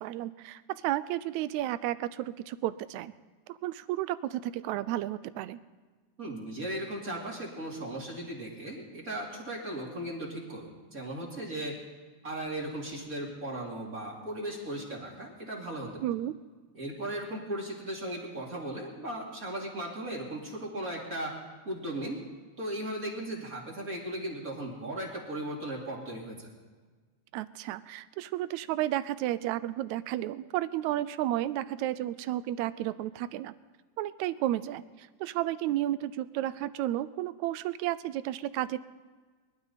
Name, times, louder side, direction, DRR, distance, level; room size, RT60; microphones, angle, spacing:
voice 1, 0.0-3.1 3.5-5.6 16.0-16.3 27.3-33.5 34.0-38.8, right 14 dB, 85° right, 15 dB, 1.9 m, -32 dB
voice 2, 6.2-11.7 12.2-15.9 16.7-21.3 21.6-22.2 22.6-26.5, right 1 dB, 30° right, -2 dB, 2.7 m, -37 dB
22.5 x 12.0 x 4.1 m, 1.4 s
omnidirectional pair, 3.3 m